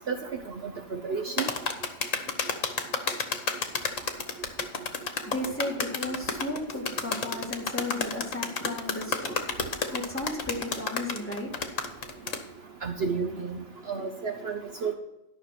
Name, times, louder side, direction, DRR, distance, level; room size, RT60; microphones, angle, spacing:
voice 1, 0.9-1.5 12.8-13.6 13.9-14.9, right 5 dB, 55° right, 4 dB, 1.0 m, -31 dB
sound 1, 1.4-12.4, left 5 dB, 75° left, 1.5 m, -30 dB
voice 2, 5.2-9.4 9.9-12.2, left 1 dB, 10° left, -1 dB, 2.0 m, -35 dB
12.5 x 5.9 x 5.9 m, 0.93 s
omnidirectional pair, 1.3 m